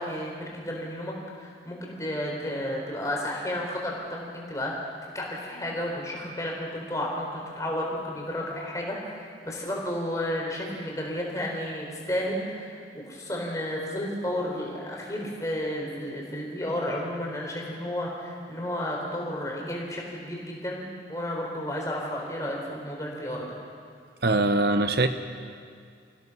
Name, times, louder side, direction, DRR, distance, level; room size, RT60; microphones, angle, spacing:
voice 1, 0.0-23.6, left 1 dB, 20° left, -2 dB, 4.3 m, -32 dB
voice 2, 24.2-25.1, right 2 dB, 60° right, 8 dB, 0.9 m, -22 dB
27.5 x 16.5 x 6.2 m, 2.2 s
head